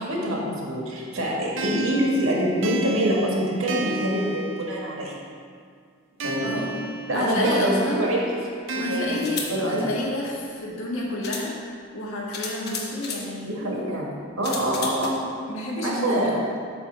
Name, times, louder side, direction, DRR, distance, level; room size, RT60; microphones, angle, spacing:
voice 1, 0.0-5.2 6.2-6.5 7.1-8.3 8.9-9.9 13.4-14.1 14.3-15.2 15.8-16.4, right 1 dB, 85° right, -3 dB, 1.8 m, -25 dB
sound 1, 1.6-5.2 6.2-10.2, right 2 dB, 65° right, 0.7 m, -33 dB
voice 2, 6.4-8.0 8.7-11.5 11.9-13.7 15.5-16.2, left 1 dB, 85° left, -3 dB, 1.7 m, -30 dB
sound 2, 8.1-8.2 9.1-9.5 10.7-10.8 11.2-11.5 12.3-13.3 14.4-15.1, left 4 dB, 50° left, 1.1 m, -33 dB
8.8 x 3.5 x 6.8 m, 2.1 s
head